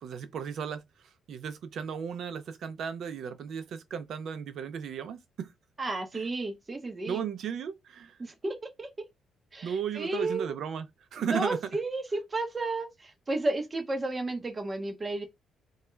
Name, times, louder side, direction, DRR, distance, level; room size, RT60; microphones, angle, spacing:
voice 1, 0.0-5.5 6.1-6.3 7.1-8.2 9.6-10.8 11.1-11.6, right 7 dB, 70° right, 0.4 m, -35 dB
voice 2, 5.8-7.2 8.2-8.9 9.5-10.5 11.2-15.3, right 2 dB, 25° right, 0.6 m, -32 dB
2.2 x 2.1 x 3.0 m
cardioid pair, 90°, 0 cm